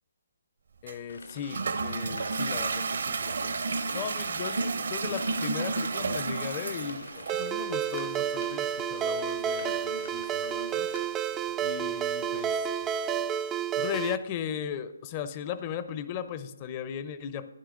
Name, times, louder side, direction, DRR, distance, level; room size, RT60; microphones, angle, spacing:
voice 1, 0.8-3.6 3.9-10.9 11.6-12.7 13.8-17.6, left 8 dB, 30° left, 12 dB, 0.6 m, -37 dB
Toilet flush, 0.9-13.6, right 4 dB, 60° right, 0.8 m, -34 dB
sound 1, 1.1-11.1, left 3 dB, 70° left, 2.8 m, -47 dB
Ringtone, 7.3-14.2, right 8 dB, 15° right, 0.3 m, -30 dB
13.0 x 10.0 x 3.7 m, 1.1 s
figure-of-eight pair, 140°, 0 cm